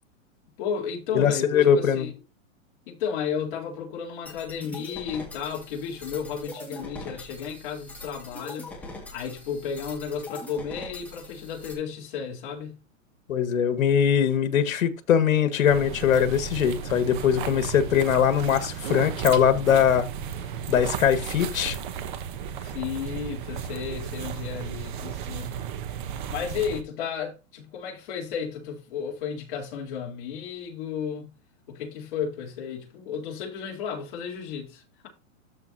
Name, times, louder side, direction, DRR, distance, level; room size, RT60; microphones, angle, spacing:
voice 1, 0.6-2.1 2.9-12.8 22.6-25.5 26.3-31.3 31.7-35.1, left 7 dB, 40° left, 3.7 m, -33 dB
voice 2, 1.1-2.1 13.3-20.1 20.7-21.8, left 8 dB, 90° left, 1.8 m, -21 dB
sound 1, 4.3-11.7, left 2 dB, 5° left, 1.8 m, -42 dB
sound 2, 15.7-26.8, right 8 dB, 40° right, 1.0 m, -34 dB
13.0 x 5.7 x 2.8 m
hypercardioid pair, 165°, 40 cm